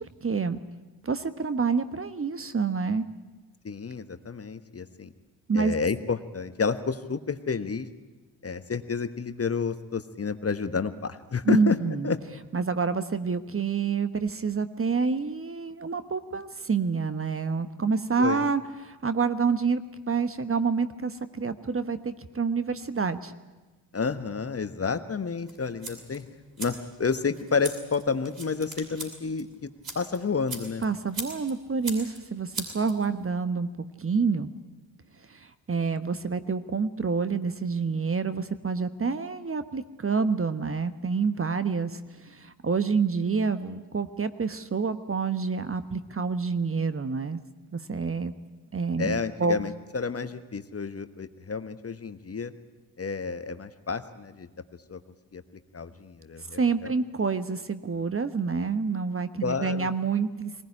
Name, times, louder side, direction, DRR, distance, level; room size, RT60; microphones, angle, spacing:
voice 1, 0.2-0.6 1.0-3.1 5.5-5.7 11.4-12.1 12.5-23.3 30.8-34.5 35.3-47.4 47.7-48.3 48.7-49.6 56.5-60.6, right 5 dB, 25° right, 12 dB, 1.2 m, -28 dB
voice 2, 3.6-5.1 5.5-7.9 8.4-11.8 12.0-12.2 18.2-18.4 23.9-26.3 26.6-29.7 29.9-30.8 49.0-52.5 53.0-54.5 54.9-55.0 55.3-55.4 55.7-56.9 59.4-59.9, left 5 dB, 30° left, 11 dB, 1.3 m, -30 dB
sound 1, 25.5-33.4, right 3 dB, 45° right, 6.8 m, -41 dB
20.5 x 19.0 x 9.9 m, 1.2 s
hypercardioid pair, 45°, 48 cm